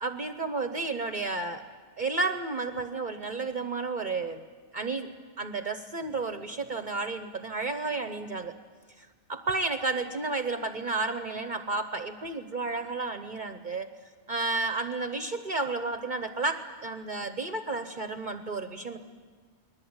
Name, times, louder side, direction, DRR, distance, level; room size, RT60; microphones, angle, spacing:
voice 1, 0.0-1.6 2.0-4.4 4.7-5.1 5.4-8.5 9.0-13.9 14.3-19.0, right 3 dB, 45° right, 9 dB, 1.1 m, -32 dB
29.5 x 20.5 x 8.9 m, 1.5 s
omnidirectional pair, 1.2 m